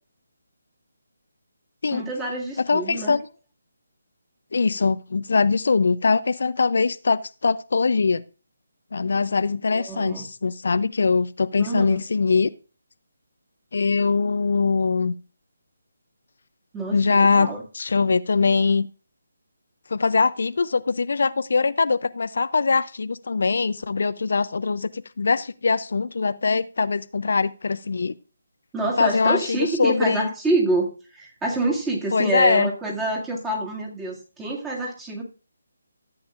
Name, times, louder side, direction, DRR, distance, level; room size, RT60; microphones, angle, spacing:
voice 1, 1.9-3.2 9.7-10.3 11.6-12.0 16.7-17.6 28.7-35.2, right 2 dB, 10° right, -2 dB, 2.0 m, -27 dB
voice 2, 2.6-3.3 4.5-8.2 8.9-12.5 13.7-15.1 16.9-18.9 19.9-28.1 29.0-30.3 32.1-32.7, left 4 dB, 60° left, 14 dB, 0.4 m, -22 dB
14.0 x 8.5 x 2.5 m, 0.35 s
figure-of-eight pair, 150°, 0 cm